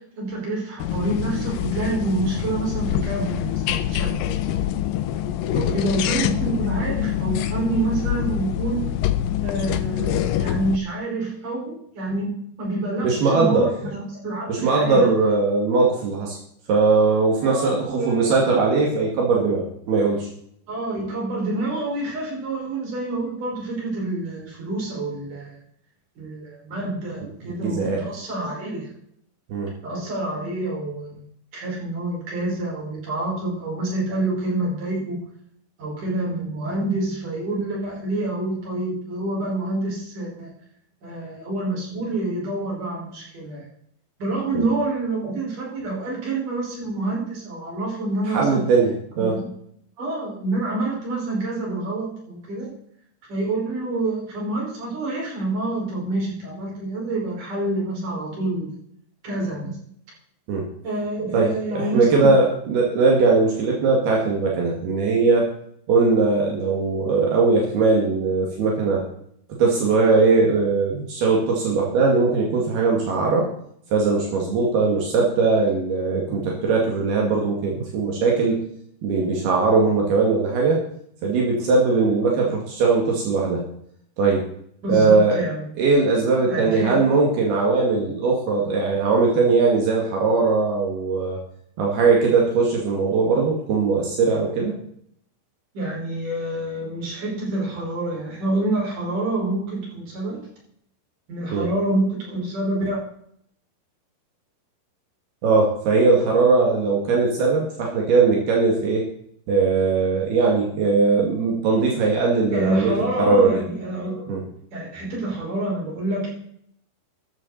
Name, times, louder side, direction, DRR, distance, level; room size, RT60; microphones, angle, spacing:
voice 1, 0.2-4.6 5.5-8.8 9.4-15.1 17.4-18.3 20.7-25.6 26.2-28.9 29.8-31.2 31.5-35.2 35.8-40.5 41.0-43.7 44.2-48.6 49.2-49.5 50.0-52.7 53.3-58.7 59.2-59.8 60.8-62.3 84.8-85.6 86.5-87.0 95.7-100.4 101.3-103.0 112.5-116.3, right 2 dB, 50° right, -3 dB, 6.6 m, -27 dB
sound 1, 0.8-10.8, left 12 dB, 80° left, 2.1 m, -25 dB
voice 2, 13.0-13.7 14.5-16.4 16.7-20.3 27.4-28.0 29.5-29.7 44.5-44.6 48.3-49.4 60.5-60.7 61.3-65.5 65.9-69.0 69.6-73.5 73.9-78.6 79.0-80.8 81.2-83.6 84.2-84.5 84.9-85.4 85.8-91.4 91.8-94.8 101.5-101.7 105.4-109.1 109.5-113.6 114.3-114.4, right 4 dB, 70° right, -1 dB, 4.1 m, -20 dB
14.0 x 12.5 x 4.1 m, 0.68 s
omnidirectional pair, 4.8 m